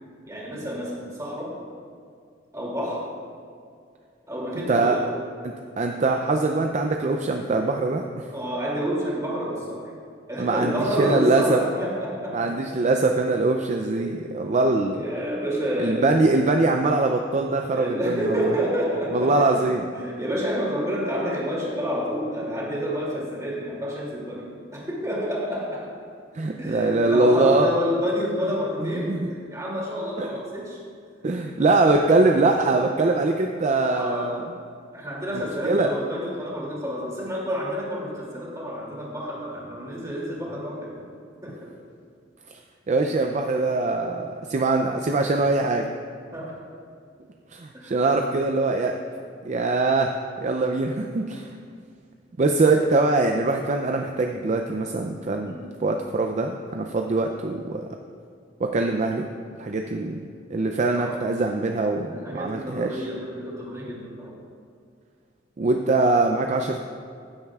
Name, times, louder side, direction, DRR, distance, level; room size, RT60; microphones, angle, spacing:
voice 1, 0.3-1.5 2.5-3.0 4.3-5.1 8.3-9.9 10.3-12.5 14.0-14.2 14.9-16.3 17.7-19.5 19.9-25.9 26.6-29.1 29.5-30.8 31.6-32.1 33.8-34.3 34.9-41.0 41.4-41.6 46.3-46.6 47.7-48.0 55.4-55.8 60.9-61.2 62.0-64.3, equal, 20° right, -5 dB, 2.5 m, -29 dB
voice 2, 5.8-8.3 10.4-11.6 12.3-15.0 15.8-18.5 19.1-19.9 26.3-27.7 28.8-29.3 30.2-30.3 31.2-34.5 35.3-35.9 42.9-45.9 47.5-48.9 49.4-50.1 50.4-51.6 52.4-57.9 58.6-59.3 59.6-60.2 60.5-63.0 65.6-66.8, right 3 dB, 40° right, 4 dB, 0.4 m, -23 dB
15.0 x 8.7 x 2.4 m, 2.3 s
head